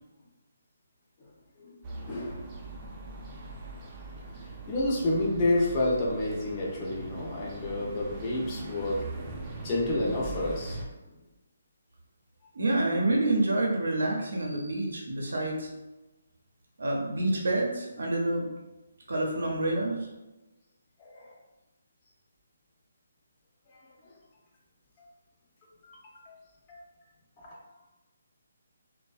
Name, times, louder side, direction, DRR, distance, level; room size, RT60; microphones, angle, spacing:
sound 1, 1.8-10.9, right 2 dB, 25° right, 0.4 m, -40 dB
voice 1, 2.0-2.5 4.7-9.0 9.6-10.8 21.0-21.4 24.0-24.1 25.8-25.9 26.3-26.4 26.7-26.8 27.4-27.6, left 2 dB, 25° left, -4 dB, 0.5 m, -29 dB
voice 2, 12.5-15.7 16.8-18.5 19.1-20.0, right 2 dB, 75° right, -1 dB, 0.6 m, -27 dB
2.5 x 2.1 x 2.3 m, 1.1 s
hypercardioid pair, 160°, 0 cm